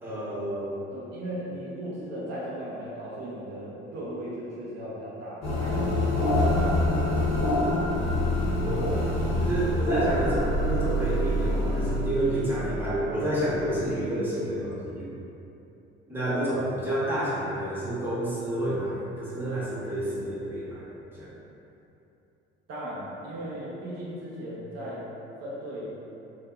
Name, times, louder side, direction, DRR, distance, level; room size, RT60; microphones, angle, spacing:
voice 1, 0.0-0.7 8.6-9.1 9.3-15.1 16.1-21.3, right 1 dB, 5° right, -10 dB, 0.9 m, -29 dB
voice 2, 0.9-6.9 7.9-8.2 16.2-16.7 22.7-25.0 25.4-25.9, equal, 50° right, -7 dB, 0.6 m, -37 dB
sound 1, 5.4-13.4, left 1 dB, 55° left, 0.9 m, -26 dB
2.6 x 2.1 x 2.2 m, 2.9 s
hypercardioid pair, 60°, 32 cm